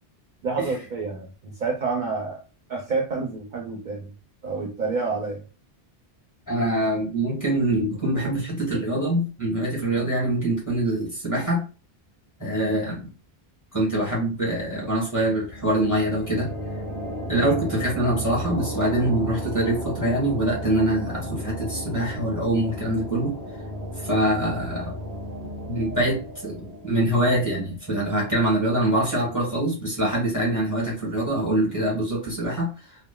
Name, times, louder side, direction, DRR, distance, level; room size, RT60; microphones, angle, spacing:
voice 1, 0.4-2.4 2.7-4.1 4.4-5.4, right 4 dB, 55° right, 0 dB, 0.6 m, -28 dB
voice 2, 6.5-11.6 12.4-13.1 13.7-16.5 17.3-23.3 24.0-24.9 25.6-32.7, right 1 dB, 20° left, -5 dB, 1.2 m, -24 dB
sound 1, 15.4-28.8, equal, 85° left, 1.2 m, -34 dB
3.1 x 2.0 x 2.2 m, 0.34 s
omnidirectional pair, 1.1 m